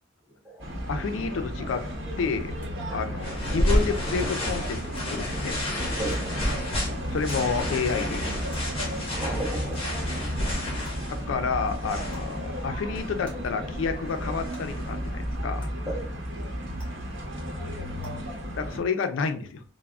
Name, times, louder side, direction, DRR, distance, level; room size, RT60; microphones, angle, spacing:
sound 1, 0.6-18.8, equal, 70° right, 0.8 m, -33 dB
voice 1, 0.9-1.8 2.2-2.5 2.9-5.6 7.1-8.3 11.1-15.7 18.5-19.6, left 5 dB, 70° left, 8 dB, 0.4 m, -30 dB
sound 2, 1.4-1.5 2.6-2.7 3.7-3.8 4.9-5.0 6.1-6.2 7.3-7.4 8.5-8.6 9.7-9.8 10.8-10.9 12.1-12.3 13.2-13.3 14.5-14.6 15.6-15.7 16.8-16.9 18.0-18.1, equal, 5° left, 0.9 m, -49 dB
sound 3, 1.7-15.4, left 1 dB, 30° left, 1.0 m, -32 dB
voice 2, 6.0-6.7 9.1-9.9 15.9-16.1, right 1 dB, 20° right, 0 dB, 0.6 m, -34 dB
3.5 x 2.0 x 2.3 m, 0.43 s
head